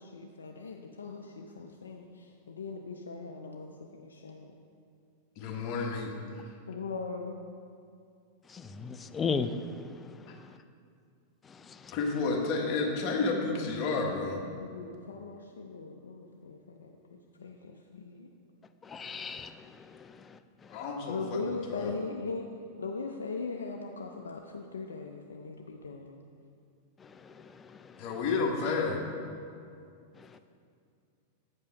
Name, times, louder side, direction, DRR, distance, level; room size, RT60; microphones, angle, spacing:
voice 1, 0.0-4.5 6.7-7.4 12.4-12.5 14.6-16.9 17.4-18.3 21.1-22.5 22.8-26.2, left 4 dB, 90° left, 2 dB, 0.5 m, -39 dB
voice 2, 5.4-6.4 11.9-14.4 20.7-21.4 21.7-22.0 28.0-29.0, left 4 dB, 50° left, 0 dB, 1.4 m, -31 dB
voice 3, 8.5-9.5 11.7-11.9 18.9-19.5 27.2-27.3, left 5 dB, 20° left, 10 dB, 0.4 m, -34 dB
8.3 x 5.4 x 5.2 m, 2.4 s
hypercardioid pair, 110°, 0 cm